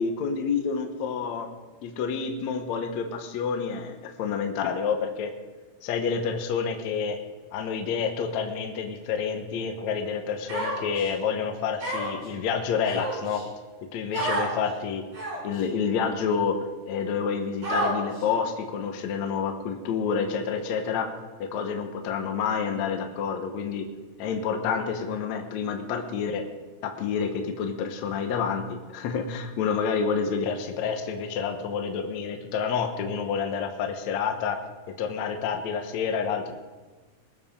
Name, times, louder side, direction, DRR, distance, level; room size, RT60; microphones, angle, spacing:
voice 1, 0.0-1.5 1.8-5.3 5.8-7.2 7.5-13.4 13.9-15.0 15.4-16.6 16.9-21.1 21.4-23.9 24.2-26.4 26.8-34.6 35.0-36.5, left 6 dB, 75° left, 5 dB, 1.7 m, -28 dB
Human voice, 10.5-11.1 11.8-12.3 12.8-13.4 14.1-14.5 15.1-15.6 16.3-16.4 17.6-18.2, right 1 dB, 50° right, 6.8 m, -29 dB
21.0 x 7.3 x 5.3 m, 1.3 s
omnidirectional pair, 4.6 m